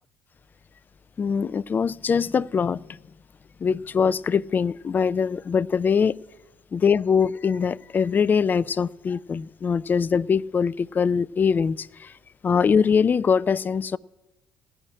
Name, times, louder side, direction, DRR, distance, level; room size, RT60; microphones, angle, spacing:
voice 1, 1.2-2.8 3.6-6.1 6.7-11.9 12.4-14.0, left 6 dB, 35° left, 0.4 m, -22 dB
16.0 x 5.7 x 9.9 m
hypercardioid pair, 60°, 5 cm